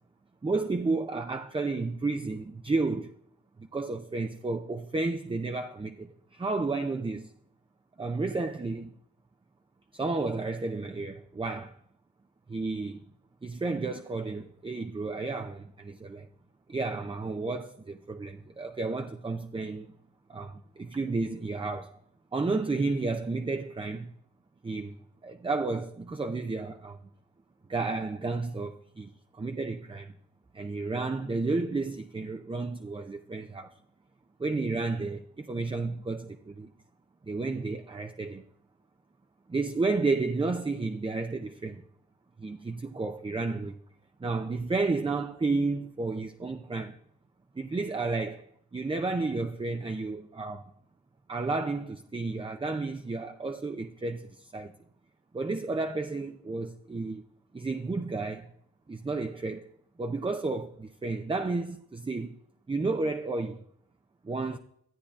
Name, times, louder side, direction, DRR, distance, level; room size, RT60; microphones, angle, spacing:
voice 1, 0.4-3.1 3.6-7.3 8.0-8.9 9.9-11.8 12.5-13.0 13.4-16.3 16.7-19.9 20.3-22.0 22.3-24.1 24.6-25.0 25.2-27.0 27.7-30.1 30.5-33.7 34.4-36.7 37.2-38.4 39.5-41.8 42.4-43.8 44.2-47.0 47.6-48.5 48.7-50.7 51.3-54.7 55.3-57.2 57.5-58.5 58.9-59.7 60.0-62.3 62.7-63.6 64.2-64.6, right 3 dB, 15° right, 0.5 m, -32 dB
13.0 x 8.4 x 2.4 m
cardioid pair, 55°, 34 cm